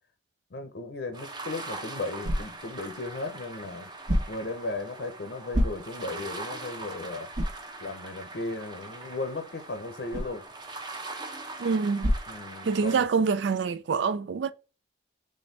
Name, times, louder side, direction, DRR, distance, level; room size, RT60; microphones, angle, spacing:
voice 1, 0.5-3.9 4.3-7.4 7.8-10.5 12.3-13.1, left 2 dB, 60° left, 0.7 m, -36 dB
sound 1, 1.1-13.1, right 3 dB, 25° right, 0.7 m, -42 dB
sound 2, 1.3-13.1, equal, 40° right, 1.1 m, -35 dB
voice 2, 11.6-12.1 12.6-14.5, right 5 dB, 70° right, 0.4 m, -26 dB
4.3 x 3.2 x 3.2 m
head